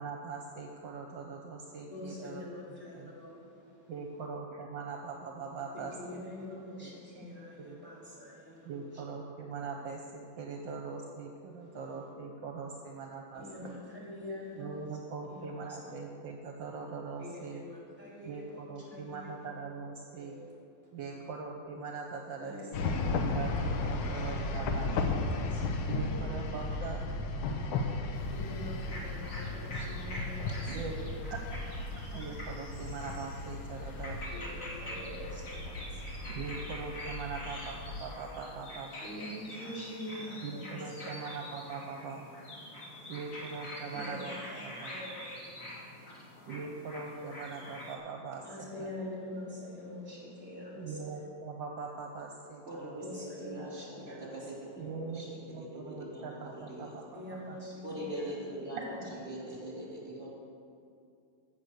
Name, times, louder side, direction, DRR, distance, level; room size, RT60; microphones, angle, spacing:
voice 1, 0.0-2.4 2.9-3.1 3.9-6.2 6.8-6.9 7.2-7.3 7.6-7.8 8.6-13.8 14.6-17.6 18.3-20.4 20.9-25.1 25.9-27.1 30.7-30.9 31.3-34.2 36.3-37.6 38.0-38.9 40.4-42.3 43.1-44.3 44.6-44.9 46.5-48.9 50.8-53.3 54.8-57.6 59.0-59.2, right 4 dB, 70° right, 2 dB, 1.5 m, -42 dB
voice 2, 1.9-3.9 5.7-9.0 9.7-9.8 11.6-11.9 13.3-15.0 15.2-15.9 17.2-19.5 20.1-20.5 20.8-20.9 22.4-24.5 24.8-25.9 27.8-31.1 34.3-36.4 39.0-41.1 42.8-43.2 43.9-46.6 48.4-51.1 53.0-54.9 57.1-59.0 59.4-59.8, left 1 dB, 5° right, -5 dB, 3.5 m, -46 dB
sound 1, 22.7-38.1, left 2 dB, 85° left, 1.7 m, -35 dB
sound 2, 28.1-48.0, left 1 dB, 40° left, 2.2 m, -45 dB
voice 3, 52.6-57.0 57.8-60.3, right 1 dB, 30° right, -5 dB, 3.3 m, -42 dB
15.0 x 6.3 x 6.6 m, 2.5 s
omnidirectional pair, 2.2 m